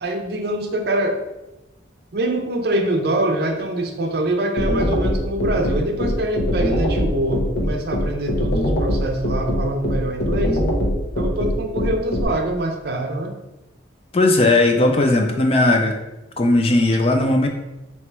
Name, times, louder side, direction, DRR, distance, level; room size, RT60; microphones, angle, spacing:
voice 1, 0.0-1.2 2.1-10.6 11.1-13.4, right 1 dB, 55° right, 4 dB, 0.5 m, -24 dB
sound 1, 4.6-12.2, equal, 75° left, 0.8 m, -21 dB
voice 2, 14.1-15.9 16.4-17.5, left 2 dB, 30° left, 4 dB, 0.4 m, -17 dB
3.3 x 2.9 x 4.3 m, 0.99 s
head